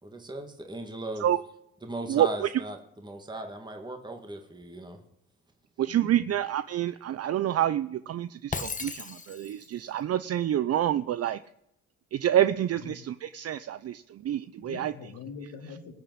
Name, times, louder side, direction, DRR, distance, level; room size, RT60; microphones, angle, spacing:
voice 1, 0.0-1.3 1.8-2.8 3.0-5.0, right 2 dB, 15° right, 2.0 m, -37 dB
voice 2, 2.1-2.5 5.8-11.4 12.1-14.9, right 11 dB, 55° right, 0.6 m, -27 dB
voice 3, 5.9-6.3 12.8-13.0 14.6-15.9, left 5 dB, 75° left, 2.3 m, -43 dB
Shatter, 8.5-9.7, left 4 dB, 25° left, 1.2 m, -36 dB
20.0 x 7.0 x 8.0 m
cardioid pair, 90°, 30 cm